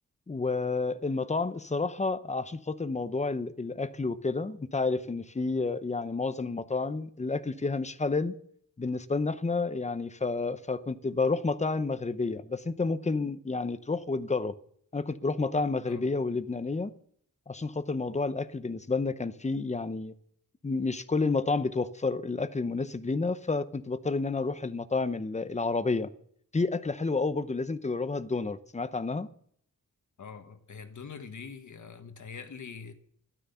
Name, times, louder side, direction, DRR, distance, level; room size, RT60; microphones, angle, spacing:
voice 1, 0.3-8.3 8.8-14.5 14.9-16.9 17.5-20.1 20.6-26.1 26.5-29.3, left 3 dB, 20° left, 0.7 m, -30 dB
voice 2, 30.2-32.9, left 5 dB, 60° left, 1.7 m, -44 dB
14.0 x 12.5 x 6.9 m
wide cardioid pair, 155°, 34 cm